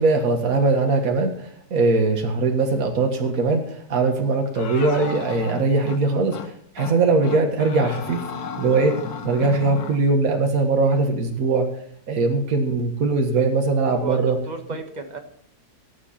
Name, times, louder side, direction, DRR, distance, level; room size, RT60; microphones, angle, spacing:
voice 1, 0.0-3.6 3.9-6.4 6.8-8.2 8.6-9.0 9.2-11.7 12.1-14.4, right 3 dB, 55° right, 3 dB, 2.0 m, -20 dB
sound 1, 4.6-6.0 6.3-6.5 6.8-7.0 7.2-10.0, left 6 dB, 65° left, 1.6 m, -34 dB
voice 2, 14.0-15.2, right 4 dB, 25° right, 5 dB, 1.4 m, -32 dB
18.5 x 7.5 x 4.4 m, 0.67 s
omnidirectional pair, 1.8 m